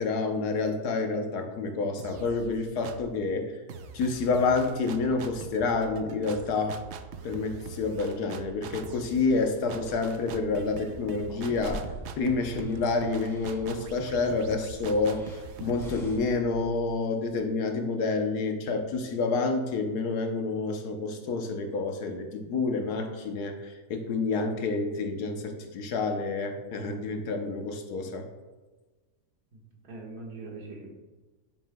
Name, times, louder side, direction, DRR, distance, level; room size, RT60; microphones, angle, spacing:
voice 1, 0.0-3.5 3.9-6.8 7.2-11.8 12.2-15.3 15.6-28.3, left 3 dB, 75° left, 5 dB, 1.3 m, -28 dB
sound 1, 2.0-3.2 3.7-17.4, right 6 dB, 90° right, 0.5 m, -43 dB
sound 2, 9.6-16.2, left 1 dB, ahead, 1.8 m, -46 dB
voice 2, 29.5-30.9, right 3 dB, 75° right, -1 dB, 2.1 m, -42 dB
9.8 x 7.5 x 2.2 m, 1.3 s
omnidirectional pair, 1.7 m